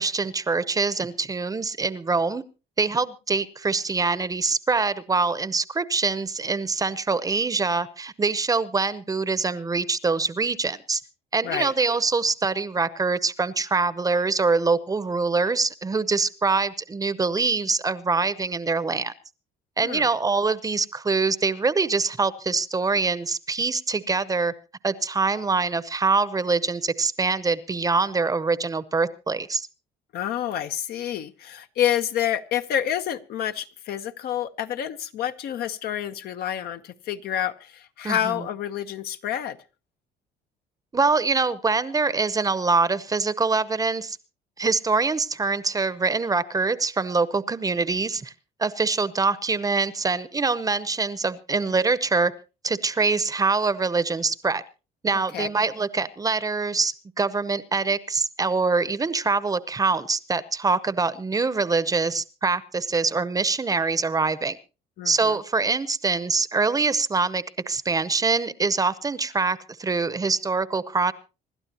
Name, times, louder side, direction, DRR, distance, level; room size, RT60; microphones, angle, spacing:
voice 1, 0.0-2.4 2.8-11.0 11.3-19.1 19.8-24.5 24.8-29.7 38.0-38.4 40.9-44.2 44.6-48.3 48.6-52.3 52.6-54.6 55.0-64.6 65.0-71.1, right 4 dB, 20° right, 0.8 m, -24 dB
voice 2, 30.1-39.6 55.1-55.5 65.0-65.4, left 10 dB, 65° left, 0.9 m, -28 dB
26.0 x 12.0 x 2.9 m
cardioid pair, 110°, 17 cm